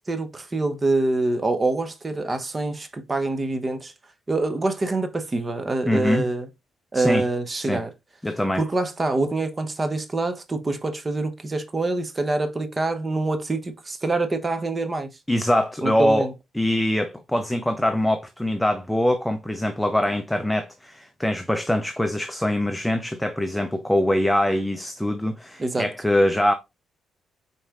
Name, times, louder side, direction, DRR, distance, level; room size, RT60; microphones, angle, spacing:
voice 1, 0.1-3.9 4.3-6.5 6.9-7.9 8.6-15.1 15.8-16.3 25.6-25.9, right 2 dB, 25° right, 0.9 m, -25 dB
voice 2, 5.9-6.3 6.9-7.2 7.6-7.8 8.2-8.6 15.3-16.3 16.5-26.5, left 1 dB, 5° left, 0.5 m, -23 dB
5.1 x 4.2 x 2.4 m
cardioid pair, 90°, 0 cm